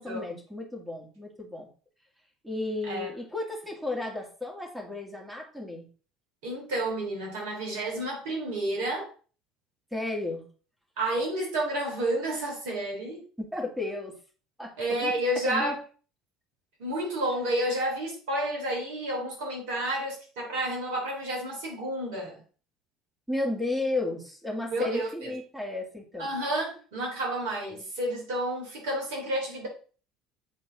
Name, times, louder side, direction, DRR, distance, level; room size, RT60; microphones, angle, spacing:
voice 1, 0.0-1.7 2.4-5.9 9.9-10.4 13.4-14.2 14.6-15.1 15.4-15.8 23.3-26.3, left 2 dB, 5° right, 0 dB, 2.1 m, -33 dB
voice 2, 6.4-9.1 11.0-13.2 14.8-15.8 16.8-22.4 24.7-25.3 26.2-29.7, right 1 dB, 65° right, -2 dB, 3.1 m, -30 dB
7.8 x 3.8 x 3.8 m, 0.39 s
figure-of-eight pair, 60°, 0 cm